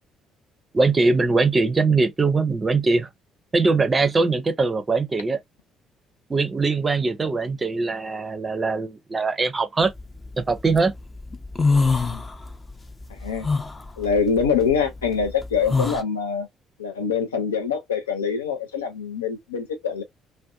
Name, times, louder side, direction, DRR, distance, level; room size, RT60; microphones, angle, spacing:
voice 1, 0.7-3.1 3.5-5.4 6.3-9.9 10.4-10.9, right 3 dB, 30° right, 0.5 m, -21 dB
sound 1, 10.0-10.8 11.2-12.7 13.0-16.0, left 4 dB, 25° left, 0.5 m, -24 dB
voice 2, 11.9-12.2 13.1-13.5 14.0-16.5 16.8-20.0, left 6 dB, 80° left, 0.5 m, -24 dB
2.4 x 2.2 x 2.4 m
figure-of-eight pair, 45°, 0 cm